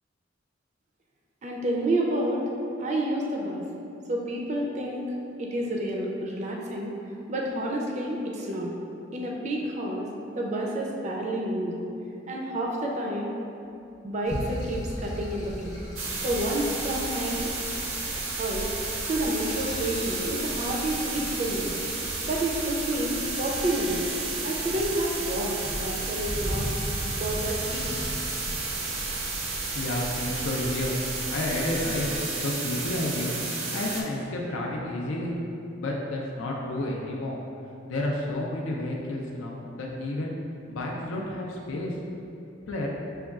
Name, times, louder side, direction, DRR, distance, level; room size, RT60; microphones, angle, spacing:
voice 1, 1.4-2.4 2.8-3.6 4.1-5.1 5.4-6.9 7.3-8.7 9.1-10.1 10.4-11.8 12.3-13.3 14.0-15.8 16.2-17.5 18.4-18.7 19.1-21.8 22.2-24.0 24.4-25.5 25.8-26.7 27.2-27.9, right 1 dB, 35° right, -1 dB, 0.4 m, -29 dB
sound 1, 14.2-32.2, equal, 20° left, 0.6 m, -39 dB
sound 2, 14.3-20.6, equal, 55° left, 0.8 m, -40 dB
sound 3, 16.0-34.0, right 3 dB, 85° right, 0.6 m, -32 dB
voice 2, 29.6-31.0 31.3-32.1 32.3-35.4 35.8-37.4 37.9-40.3 40.7-42.0 42.7-42.9, left 1 dB, 85° left, -2 dB, 0.4 m, -31 dB
6.1 x 2.2 x 2.3 m, 2.8 s
head